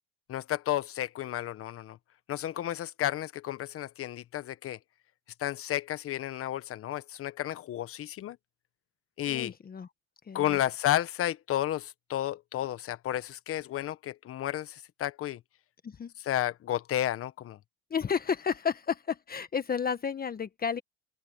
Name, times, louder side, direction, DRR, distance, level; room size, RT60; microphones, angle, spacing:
voice 1, 0.3-2.0 2.3-4.8 5.4-8.4 9.2-9.5 10.3-15.4 16.2-17.6, left 12 dB, 45° left, 1.3 m, -32 dB
voice 2, 9.3-9.9 10.3-10.6 15.8-16.1 17.9-20.8, left 6 dB, 30° left, 1.5 m, -32 dB
open air
supercardioid pair, 95°, 31 cm